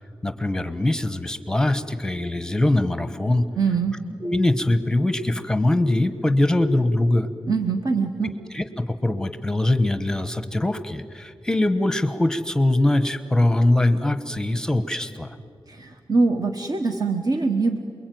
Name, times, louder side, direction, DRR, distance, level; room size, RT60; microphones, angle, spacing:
voice 1, 0.2-3.5 4.2-7.3 8.2-15.4, left 1 dB, 5° left, 11 dB, 1.1 m, -22 dB
voice 2, 3.6-4.0 7.5-8.3 15.7-17.8, right 4 dB, 45° right, 5 dB, 1.4 m, -23 dB
28.5 x 22.0 x 9.3 m, 2.2 s
wide cardioid pair, 175°, 9 cm